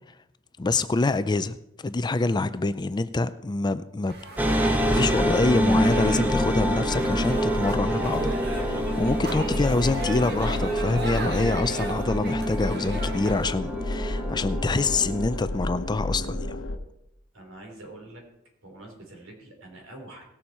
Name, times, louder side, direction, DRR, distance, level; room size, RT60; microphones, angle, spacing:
voice 1, 0.6-1.6 1.8-4.1 4.5-16.6, left 3 dB, 20° left, 13 dB, 0.4 m, -26 dB
sound 1, 4.1-13.5, right 2 dB, 55° right, 1.8 m, -37 dB
sound 2, 4.4-15.6, equal, 10° right, 0.9 m, -27 dB
sound 3, 4.8-16.8, left 1 dB, 85° left, 1.1 m, -32 dB
voice 2, 9.3-10.1 17.3-18.2 18.6-20.2, right 1 dB, 80° right, 1 dB, 3.6 m, -44 dB
18.0 x 7.0 x 4.3 m, 0.82 s
head